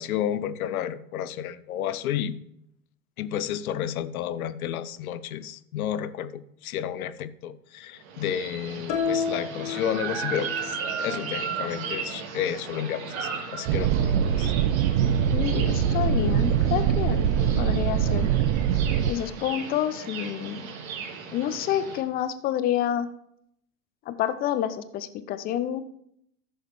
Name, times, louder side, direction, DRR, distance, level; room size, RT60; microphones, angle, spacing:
voice 1, 0.0-2.4 3.2-14.0 14.4-14.5, left 10 dB, 65° left, 15 dB, 0.7 m, -31 dB
sound 1, 8.0-22.0, right 6 dB, 60° right, 1.7 m, -36 dB
sound 2, 8.9-10.7, left 6 dB, 40° left, 1.0 m, -30 dB
sound 3, 13.7-19.1, right 8 dB, 40° right, 0.5 m, -23 dB
voice 2, 15.3-17.3 17.6-18.3 19.1-20.6 21.3-23.1 24.1-25.8, left 11 dB, 20° left, 13 dB, 0.4 m, -28 dB
14.5 x 6.5 x 3.1 m, 0.75 s
figure-of-eight pair, 85°, 47 cm